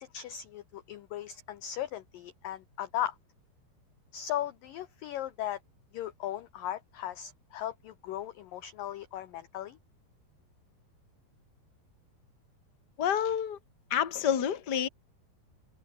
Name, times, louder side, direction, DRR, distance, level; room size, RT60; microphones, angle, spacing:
voice 1, 0.1-3.2 4.1-5.6 5.9-9.8, left 12 dB, 75° left, 2.1 m, -37 dB
voice 2, 13.0-13.6 13.9-14.9, left 9 dB, 35° left, 1.8 m, -28 dB
omnidirectional pair, 5.2 m